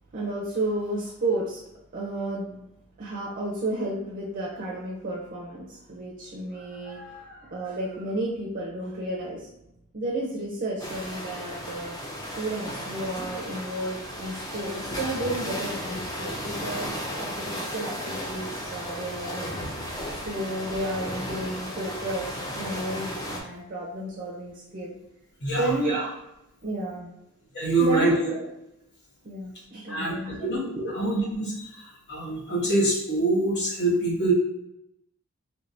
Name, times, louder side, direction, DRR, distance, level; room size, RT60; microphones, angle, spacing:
voice 1, 0.1-1.6 1.9-2.7 3.0-9.5 9.9-11.9 12.3-19.6 20.1-24.9 25.6-26.2 26.6-27.1 27.8-28.5 29.2-30.5 30.8-31.1, right 1 dB, 40° right, -3 dB, 0.5 m, -32 dB
sound 1, 10.8-23.4, equal, 15° left, 0.5 m, -34 dB
voice 2, 25.4-25.7 27.5-28.3 29.9-34.3, right 2 dB, 50° left, -4 dB, 1.2 m, -25 dB
3.3 x 3.1 x 2.6 m, 0.85 s
head